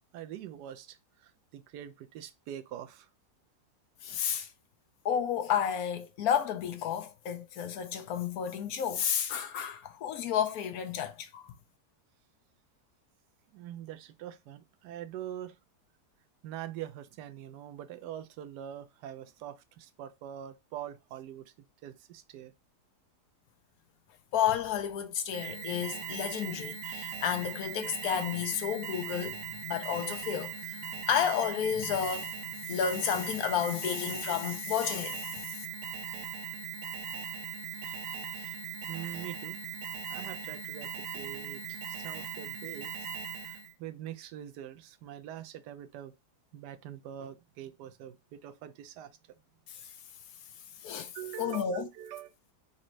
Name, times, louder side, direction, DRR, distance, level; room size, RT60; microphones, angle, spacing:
voice 1, 0.0-3.1 13.5-15.6 16.4-21.5 21.8-22.5 37.8-38.6 38.9-39.6 40.1-43.1 43.4-46.1 46.5-49.2 51.1-52.3, right 11 dB, 85° right, 1.2 m, -44 dB
voice 2, 4.0-4.5 5.0-11.5 24.3-29.4 29.6-30.8 31.1-32.3 32.7-35.6 49.7-49.8 50.8-51.1 51.4-51.9, left 8 dB, 70° left, 1.0 m, -31 dB
Alarm, 25.3-43.7, right 7 dB, 60° right, 1.0 m, -39 dB
4.1 x 2.5 x 4.3 m
omnidirectional pair, 1.7 m